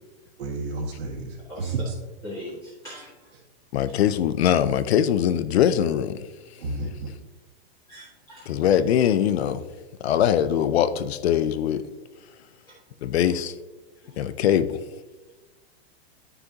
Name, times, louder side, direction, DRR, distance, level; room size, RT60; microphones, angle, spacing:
voice 1, 0.4-2.0 3.3-3.4 6.6-7.1, right 3 dB, 80° right, 1.9 m, -31 dB
voice 2, 2.2-3.1 7.9-8.5 14.0-14.3, left 1 dB, 10° left, 1.6 m, -40 dB
voice 3, 3.7-6.2 8.5-9.6 10.0-11.9 13.0-13.5 14.2-14.8, left 10 dB, 80° left, 0.7 m, -22 dB
9.9 x 6.8 x 2.8 m
supercardioid pair, 170°, 31 cm